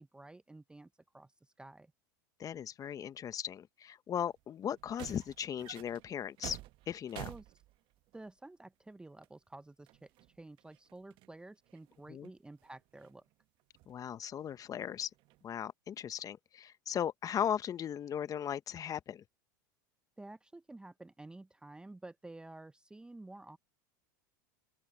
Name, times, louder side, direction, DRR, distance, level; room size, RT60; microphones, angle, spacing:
voice 1, 0.0-1.9 7.3-7.5 8.1-10.1 10.4-13.2 20.2-23.6, right 2 dB, 10° right, 0.7 m, -51 dB
voice 2, 2.4-6.6 6.9-7.3 12.1-12.3 13.9-15.1 15.4-19.2, left 9 dB, 35° left, 1.2 m, -37 dB
sound 1, 4.3-4.4 4.7-8.3 9.2-9.3 9.9-11.3 11.7-13.3 13.7-13.9 15.1-15.6, right 18 dB, 50° right, 1.1 m, -50 dB
open air
hypercardioid pair, 95°, 11 cm